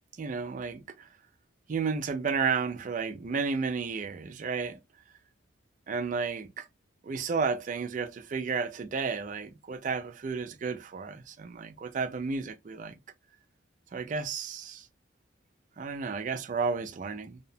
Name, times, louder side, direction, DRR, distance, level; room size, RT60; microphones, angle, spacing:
voice 1, 0.2-1.1 1.7-4.8 5.9-6.7 7.0-13.0 13.9-14.9 15.8-17.4, right 5 dB, 40° right, 0.3 m, -32 dB
2.8 x 2.0 x 2.6 m
head